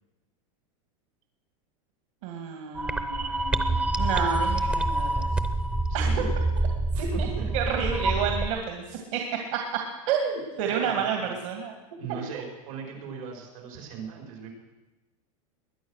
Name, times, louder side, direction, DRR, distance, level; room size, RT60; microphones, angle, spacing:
voice 1, 2.2-5.3 5.9-6.1 7.0-7.3 7.5-9.2 9.5-9.6 10.1-11.7 12.1-12.2, right 7 dB, 70° right, 2 dB, 2.3 m, -30 dB
sound 1, 2.7-8.5, right 2 dB, 5° right, 0.6 m, -26 dB
voice 2, 5.9-6.3 6.9-7.5 10.6-11.3 12.0-14.5, right 6 dB, 90° right, 1 dB, 5.1 m, -39 dB
21.0 x 9.8 x 6.5 m, 1.1 s
supercardioid pair, 160°, 17 cm